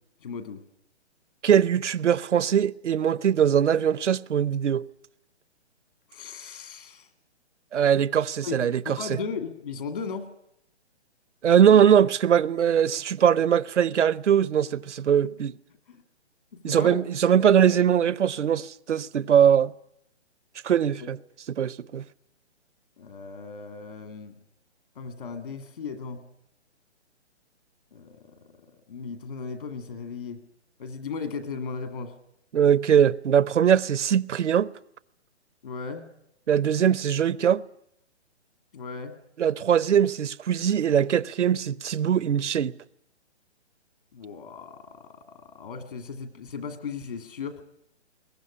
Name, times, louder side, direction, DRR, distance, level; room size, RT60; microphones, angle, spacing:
voice 1, 0.2-0.6 6.1-7.1 8.4-10.3 15.9-16.0 16.5-17.0 21.0-21.1 23.0-24.3 25.0-26.2 27.9-30.4 30.8-32.1 35.6-36.0 38.7-39.1 44.1-47.6, left 5 dB, 50° left, 2.2 m, -37 dB
voice 2, 1.4-4.9 7.7-9.0 11.4-15.5 16.6-19.7 20.6-21.2 21.5-22.0 32.5-34.7 36.5-37.6 39.4-42.7, right 8 dB, 80° right, 0.9 m, -21 dB
22.0 x 19.5 x 9.9 m
hypercardioid pair, 170°, 35 cm